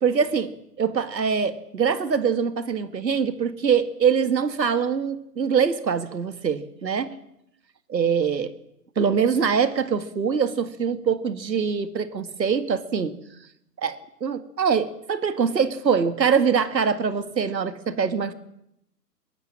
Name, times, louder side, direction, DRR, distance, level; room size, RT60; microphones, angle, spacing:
voice 1, 0.0-7.2 7.9-8.5 9.0-13.1 13.8-18.3, right 6 dB, 85° right, 11 dB, 2.1 m, -23 dB
23.0 x 20.5 x 7.5 m, 0.80 s
hypercardioid pair, 155°, 50 cm